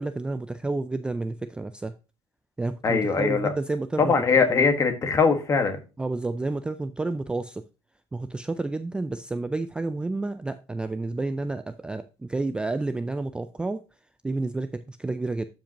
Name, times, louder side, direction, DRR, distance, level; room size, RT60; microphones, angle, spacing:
voice 1, 0.0-1.9 2.6-4.1 4.5-4.6 6.0-7.6 8.1-13.8 14.2-15.5, right 2 dB, 10° right, 0.3 m, -30 dB
voice 2, 2.8-3.5 4.0-5.8, left 5 dB, 30° left, 1.5 m, -21 dB
12.0 x 5.2 x 2.9 m
cardioid pair, 135°, 11 cm